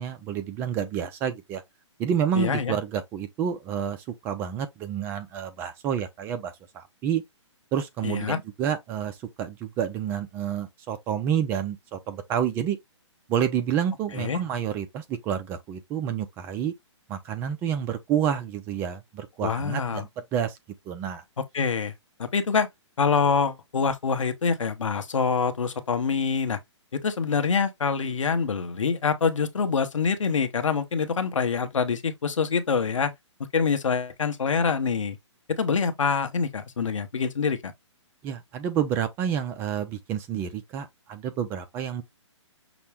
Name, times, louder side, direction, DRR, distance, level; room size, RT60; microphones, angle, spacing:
voice 1, 0.0-1.6 2.0-7.2 7.7-12.8 13.3-16.7 17.1-20.6 20.9-21.2 38.2-42.0, right 8 dB, 15° right, 0.3 m, -29 dB
voice 2, 2.3-2.7 8.0-8.4 14.1-14.4 19.4-20.0 21.5-21.9 22.2-22.7 23.0-26.6 26.9-33.1 33.5-35.2 35.5-37.7, left 5 dB, 85° left, 0.9 m, -25 dB
6.0 x 2.0 x 3.4 m
hypercardioid pair, 145°, 16 cm